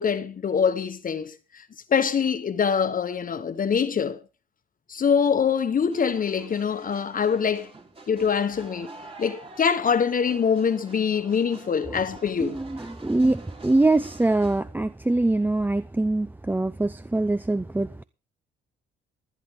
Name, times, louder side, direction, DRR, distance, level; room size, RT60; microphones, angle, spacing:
voice 1, 0.0-4.2 4.9-7.7 8.1-8.9 9.2-12.6, left 6 dB, 45° left, 1.2 m, -24 dB
sound 1, 5.9-14.6, right 3 dB, 30° right, 3.9 m, -46 dB
voice 2, 12.4-18.0, right 2 dB, 10° right, 0.6 m, -24 dB
20.0 x 10.5 x 3.7 m
cardioid pair, 90°, 20 cm